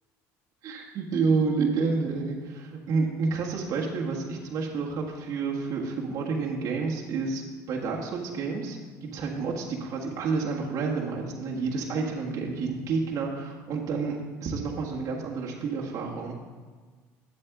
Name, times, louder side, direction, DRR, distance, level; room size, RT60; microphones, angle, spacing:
voice 1, 0.6-8.8 9.1-16.3, right 4 dB, 55° right, -3 dB, 1.7 m, -29 dB
8.8 x 7.9 x 3.9 m, 1.4 s
supercardioid pair, 95°, 7 cm